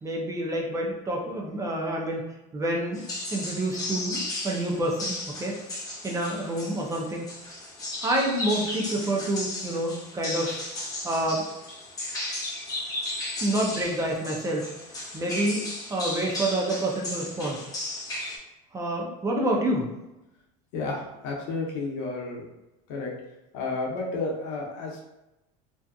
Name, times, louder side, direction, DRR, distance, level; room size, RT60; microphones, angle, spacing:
voice 1, 0.0-3.0 3.3-5.6 6.0-7.3 8.0-10.6 11.0-11.4 13.4-14.8 15.1-17.7 18.7-19.9, right 1 dB, 20° right, -1 dB, 0.4 m, -28 dB
sound 1, 2.9-18.4, left 1 dB, 20° left, 0.8 m, -35 dB
voice 2, 20.7-22.5 22.9-23.1 23.5-25.0, left 3 dB, 70° left, -1 dB, 0.7 m, -31 dB
2.7 x 2.3 x 2.3 m, 0.97 s
supercardioid pair, 125°, 18 cm